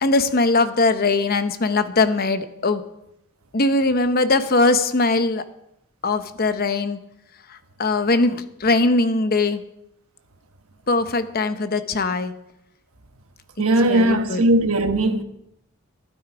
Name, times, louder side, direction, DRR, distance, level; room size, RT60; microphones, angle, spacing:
voice 1, 0.0-2.8 3.5-5.4 6.0-7.0 7.8-9.6 10.9-12.3 13.9-14.4, left 3 dB, 45° left, 0.8 m, -20 dB
voice 2, 13.6-15.2, right 1 dB, 75° right, 1.2 m, -18 dB
13.0 x 12.0 x 4.9 m
head